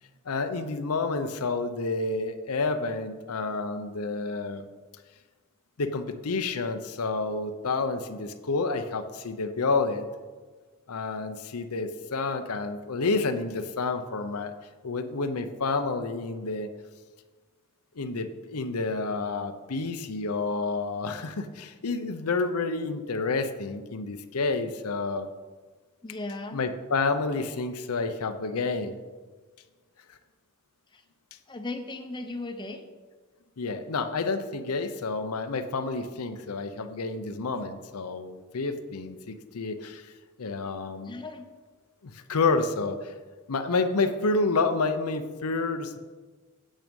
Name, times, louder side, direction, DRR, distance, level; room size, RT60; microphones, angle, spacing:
voice 1, 0.3-4.7 5.8-10.1 10.9-14.5 14.8-16.7 18.0-25.3 26.5-29.0 33.6-40.1 40.4-41.2 42.1-43.1 43.5-46.0, left 3 dB, 85° left, 8 dB, 0.7 m, -29 dB
voice 2, 26.0-26.6 30.9-31.0 31.5-32.8 41.0-41.5, left 2 dB, 20° left, 6 dB, 0.6 m, -36 dB
9.0 x 7.6 x 5.3 m, 1.4 s
head